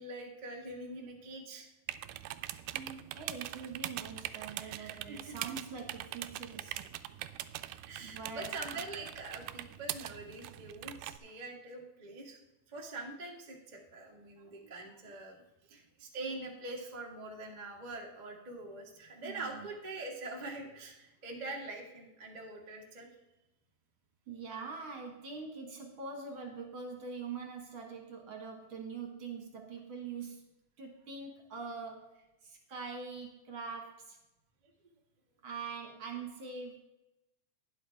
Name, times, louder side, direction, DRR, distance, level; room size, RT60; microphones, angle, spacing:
voice 1, 0.0-1.7 4.4-5.3 7.9-12.4 12.7-23.1 35.8-35.9, right 2 dB, 30° right, -1 dB, 0.8 m, -44 dB
sound 1, 1.9-11.2, right 14 dB, 80° right, 2.0 m, -42 dB
voice 2, 2.7-6.9 8.0-8.8 19.2-19.7 24.3-30.4 30.8-34.2 35.4-36.8, right 5 dB, 50° right, 2 dB, 1.9 m, -44 dB
11.5 x 10.5 x 3.4 m, 0.96 s
omnidirectional pair, 3.7 m